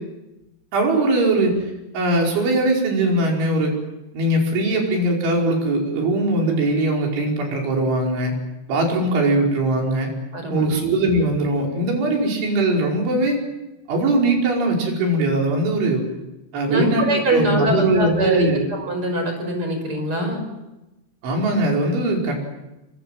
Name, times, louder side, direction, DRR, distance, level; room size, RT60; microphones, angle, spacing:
voice 1, 0.7-1.6 1.9-3.7 4.1-8.3 8.7-10.1 10.5-13.4 13.9-16.0 16.5-18.7 21.2-22.4, right 2 dB, 85° right, 0 dB, 7.7 m, -20 dB
voice 2, 10.3-10.8 16.7-20.4, right 1 dB, 30° right, 5 dB, 6.1 m, -23 dB
25.0 x 24.0 x 7.7 m, 0.98 s
omnidirectional pair, 5.3 m